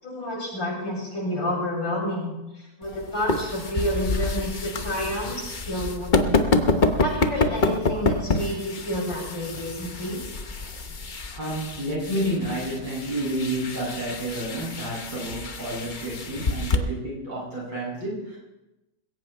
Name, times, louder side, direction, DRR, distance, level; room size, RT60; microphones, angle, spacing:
voice 1, 0.0-6.5 7.0-10.2, equal, 65° left, -4 dB, 7.9 m, -30 dB
sound 1, 2.8-16.8, left 3 dB, 40° left, 0.7 m, -27 dB
voice 2, 11.3-18.4, right 1 dB, 60° right, -6 dB, 8.3 m, -30 dB
21.0 x 17.0 x 3.4 m, 0.99 s
omnidirectional pair, 2.2 m